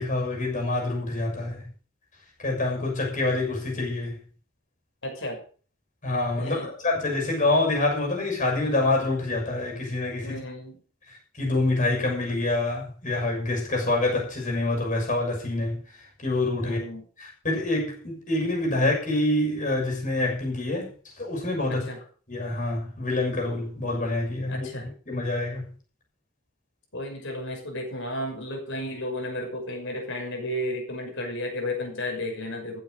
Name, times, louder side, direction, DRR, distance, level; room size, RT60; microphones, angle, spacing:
voice 1, 0.0-1.6 2.4-4.2 6.0-10.4 11.3-15.8 16.2-16.8 17.2-21.9 22.3-24.7 25.1-25.7, left 2 dB, 35° left, 6.7 m, -26 dB
voice 2, 5.0-5.4 6.4-6.7 10.2-10.8 16.6-17.1 21.7-22.0 24.5-24.9 26.9-32.8, left 1 dB, 55° left, 6.0 m, -33 dB
15.0 x 8.8 x 6.6 m
head